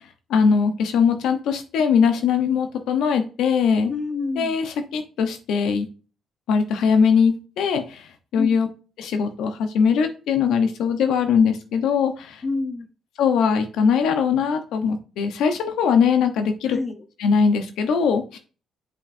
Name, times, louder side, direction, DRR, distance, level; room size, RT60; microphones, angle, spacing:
voice 1, 0.3-3.9 4.4-5.9 6.5-8.1 8.3-8.7 9.0-12.4 13.2-16.8 17.2-18.4, left 6 dB, 80° left, 7 dB, 0.9 m, -21 dB
voice 2, 3.9-4.6 8.4-8.7 12.4-12.9 16.7-17.0, left 3 dB, 40° left, 8 dB, 0.9 m, -28 dB
7.5 x 5.3 x 2.6 m, 0.35 s
cardioid pair, 90°, 0 cm